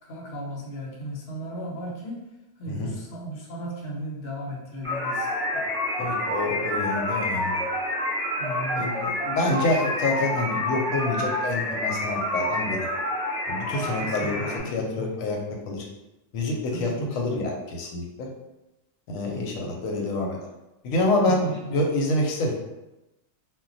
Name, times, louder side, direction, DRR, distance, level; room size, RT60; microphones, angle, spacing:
voice 1, 0.0-2.2 2.6-5.3 8.4-9.2 13.8-15.2 16.7-17.4 21.2-21.9, right 1 dB, 50° left, -3 dB, 0.8 m, -36 dB
sound 1, 4.8-14.6, left 1 dB, 5° left, 0.8 m, -28 dB
voice 2, 6.0-7.5 8.7-12.9 13.5-15.4 15.7-15.9 16.3-18.3 19.1-20.4 20.8-22.5, left 2 dB, 90° left, 0 dB, 1.0 m, -27 dB
2.2 x 2.2 x 3.8 m, 0.98 s
omnidirectional pair, 1.3 m